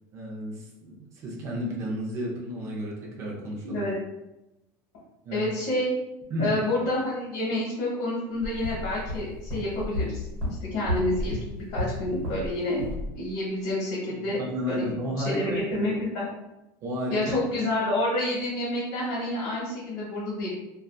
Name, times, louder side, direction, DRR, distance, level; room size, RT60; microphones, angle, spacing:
voice 1, 0.1-3.8 5.2-5.5 6.3-6.5 14.2-15.8 16.8-17.2, equal, 30° right, -2 dB, 0.5 m, -32 dB
voice 2, 3.6-4.0 5.3-5.9 6.4-10.2 10.6-12.8 13.1-14.4 14.7-14.8 15.2-16.2 17.1-20.5, left 1 dB, 65° left, -7 dB, 1.0 m, -28 dB
sound 1, 8.4-12.5 12.8-13.1, left 1 dB, 55° right, 1.0 m, -32 dB
2.5 x 2.3 x 2.2 m, 0.94 s
cardioid pair, 175°, 10 cm